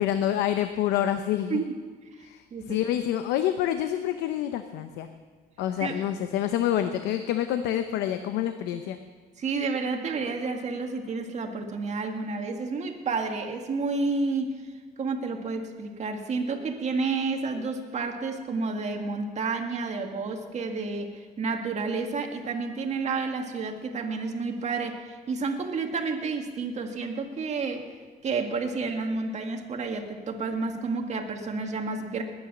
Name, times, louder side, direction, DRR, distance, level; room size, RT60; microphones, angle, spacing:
voice 1, 0.0-1.6 2.2-5.1 5.6-9.0, left 11 dB, 90° left, 9 dB, 0.7 m, -27 dB
voice 2, 9.4-14.6 15.0-27.9 28.2-32.2, right 4 dB, 40° right, 3 dB, 1.9 m, -30 dB
20.5 x 9.8 x 6.0 m, 1.5 s
cardioid pair, 110°, 17 cm